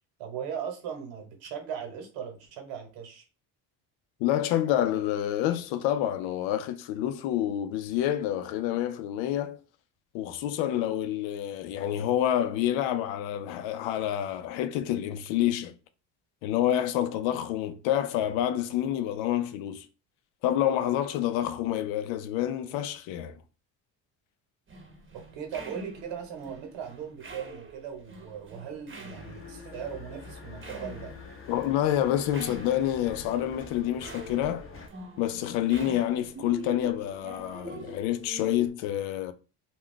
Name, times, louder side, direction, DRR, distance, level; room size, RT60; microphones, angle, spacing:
voice 1, 0.2-3.2 25.3-31.1, right 8 dB, 75° right, 1.1 m, -38 dB
voice 2, 4.2-9.6 10.1-15.7 16.4-19.9 20.4-23.4 31.5-34.7 35.2-39.3, left 11 dB, 75° left, 0.5 m, -28 dB
sound 1, 24.7-38.7, right 2 dB, 25° right, 0.8 m, -45 dB
sound 2, 29.1-34.9, left 4 dB, 30° left, 0.6 m, -46 dB
2.3 x 2.3 x 3.6 m
supercardioid pair, 90°, 46 cm